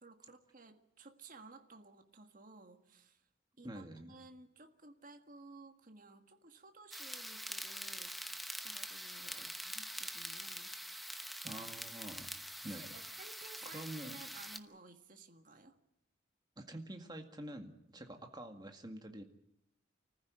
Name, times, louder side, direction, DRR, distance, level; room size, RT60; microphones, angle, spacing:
voice 1, 0.0-3.2 3.6-10.7 12.6-15.8 17.9-18.0, right 3 dB, 45° right, 6 dB, 1.7 m, -56 dB
voice 2, 3.6-4.1 9.3-9.5 11.4-12.3 12.6-12.9 13.6-14.2 16.6-19.2, right 1 dB, 20° right, 5 dB, 2.0 m, -47 dB
sound 1, 6.9-14.6, equal, ahead, 0.9 m, -45 dB
25.0 x 15.0 x 9.2 m, 0.80 s
head